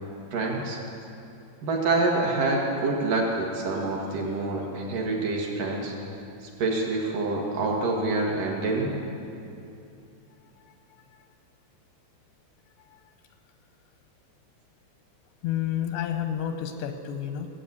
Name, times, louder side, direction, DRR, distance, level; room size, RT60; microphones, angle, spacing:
voice 1, 0.3-0.8 1.6-5.9 6.6-8.9, right 3 dB, 60° right, -1 dB, 2.9 m, -26 dB
voice 2, 15.4-17.5, left 10 dB, 85° left, 7 dB, 2.9 m, -30 dB
17.5 x 8.0 x 8.3 m, 2.7 s
omnidirectional pair, 4.9 m